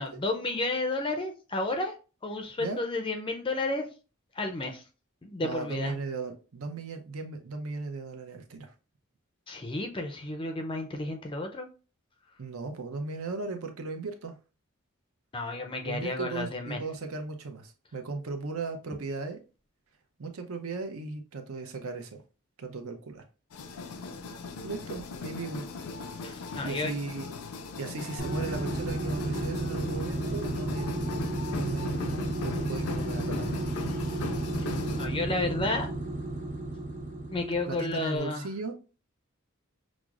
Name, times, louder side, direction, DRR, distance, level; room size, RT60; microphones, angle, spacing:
voice 1, 0.0-1.9 2.2-3.9 4.4-4.8 5.2-5.9 9.5-11.7 15.3-16.8 26.2-26.9 34.6-35.9 37.3-38.5, left 2 dB, 25° left, 0.4 m, -32 dB
voice 2, 5.4-8.7 12.4-14.3 15.8-19.4 20.2-22.1 22.6-23.2 24.6-25.7 26.6-27.4 27.8-33.7 37.7-38.7, right 3 dB, 70° right, 0.7 m, -37 dB
sound 1, 23.5-35.1, left 4 dB, 80° left, 0.5 m, -38 dB
sound 2, 28.2-38.0, right 2 dB, 35° right, 0.7 m, -33 dB
6.1 x 2.0 x 2.4 m
head